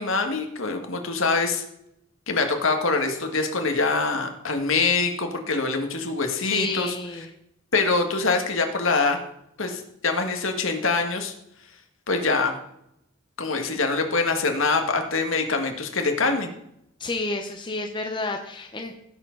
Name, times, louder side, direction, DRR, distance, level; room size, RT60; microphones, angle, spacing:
voice 1, 0.0-1.6 2.3-6.9 7.7-9.2 9.6-11.3 12.1-12.5 13.4-16.5, left 3 dB, 70° left, 4 dB, 1.8 m, -24 dB
voice 2, 6.4-7.3 17.0-19.0, left 2 dB, 20° left, 2 dB, 0.9 m, -30 dB
16.0 x 7.5 x 3.9 m, 0.76 s
head